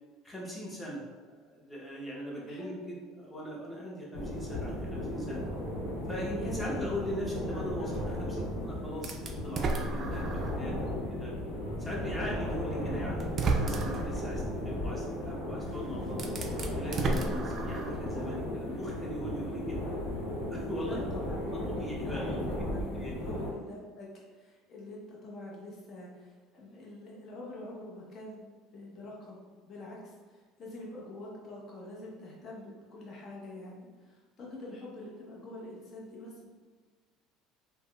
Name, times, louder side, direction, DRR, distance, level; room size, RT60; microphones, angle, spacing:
voice 1, 0.2-1.0 1.3-5.4 6.0-10.7 11.1-11.3 11.8-16.3 16.7-19.8 20.5-21.0 21.3-22.5 23.0-23.1, equal, 15° left, -4 dB, 0.9 m, -40 dB
sound 1, 4.1-23.5, left 1 dB, 85° left, 0.8 m, -35 dB
voice 2, 6.4-6.9 7.5-7.9 20.8-22.4 22.7-36.5, left 1 dB, 40° left, -4 dB, 0.7 m, -45 dB
sound 2, 9.0-10.7 11.2-11.3 12.5-12.6 13.2-14.2 15.6-15.7 16.1-18.1, right 3 dB, 40° right, 0.3 m, -33 dB
3.3 x 2.1 x 2.3 m, 1.4 s
supercardioid pair, 105°, 0 cm